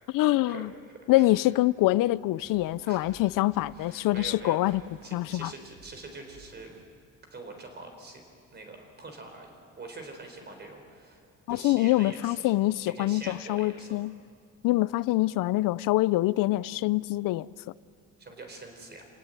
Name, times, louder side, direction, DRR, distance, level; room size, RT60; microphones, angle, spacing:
voice 1, 0.1-0.7 1.1-4.8 5.1-5.5 11.5-14.1 14.6-17.5, left 17 dB, 80° left, 0.5 m, -25 dB
sound 1, 2.5-6.8, right 6 dB, 90° right, 1.8 m, -54 dB
voice 2, 2.9-3.2 3.7-4.8 5.0-6.7 7.3-8.2 8.5-11.2 11.5-12.5 12.9-14.0 18.2-19.0, right 3 dB, 30° right, 4.1 m, -44 dB
27.5 x 18.0 x 9.1 m
cardioid pair, 160°, 33 cm